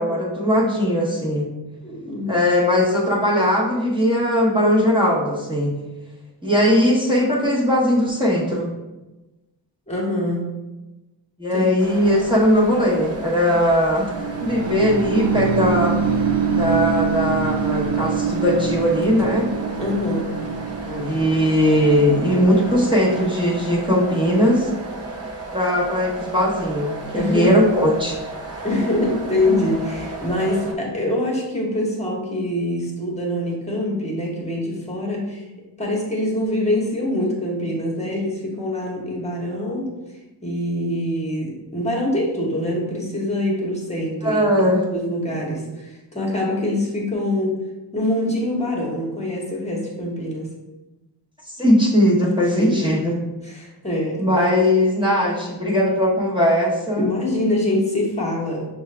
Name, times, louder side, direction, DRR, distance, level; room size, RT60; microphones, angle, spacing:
voice 1, 0.0-1.5 2.3-5.7 6.4-8.7 11.4-14.1 14.4-16.0 16.5-19.5 20.9-24.7 25.5-28.2 44.2-44.8 51.5-53.1 54.2-57.1, equal, 10° right, -5 dB, 1.1 m, -19 dB
voice 2, 1.8-2.4 9.9-10.5 11.5-11.7 19.8-20.4 27.1-27.6 28.6-35.4 35.8-39.9 40.4-44.4 44.9-47.6 47.9-50.5 52.5-52.8 53.4-54.3 57.0-58.7, left 1 dB, 15° left, -2 dB, 1.2 m, -24 dB
sound 1, 11.8-30.7, right 2 dB, 35° right, 0.7 m, -34 dB
sound 2, 14.1-24.1, right 6 dB, 80° right, 0.7 m, -25 dB
6.1 x 2.4 x 3.3 m, 1.1 s
wide cardioid pair, 100°, 45 cm